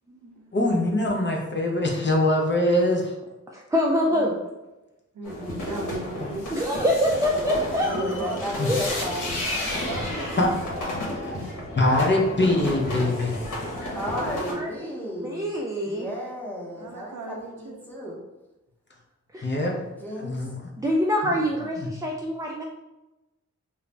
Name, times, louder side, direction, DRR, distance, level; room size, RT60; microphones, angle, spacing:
voice 1, 0.5-3.1 8.6-8.7 10.4-10.6 11.2-11.4 11.8-13.4 19.4-19.9 20.2-20.5 21.2-21.3, left 1 dB, 35° left, 0 dB, 0.6 m, -23 dB
voice 2, 3.5-4.4 6.5-8.0 8.7-8.8 14.5-16.1 19.3-19.5 20.8-22.6, equal, 10° right, -1 dB, 0.3 m, -25 dB
voice 3, 5.1-6.5 7.9-8.4 9.6-10.5 13.9-14.4 16.8-17.9, right 3 dB, 70° right, 2 dB, 0.5 m, -36 dB
sound 1, 5.2-14.5, left 1 dB, 75° left, 0.9 m, -32 dB
voice 4, 7.8-9.4 13.9-15.5 15.8-18.2 19.9-20.5, equal, 5° left, -4 dB, 0.9 m, -34 dB
2.4 x 2.0 x 3.2 m, 1.0 s
cardioid pair, 45°, 31 cm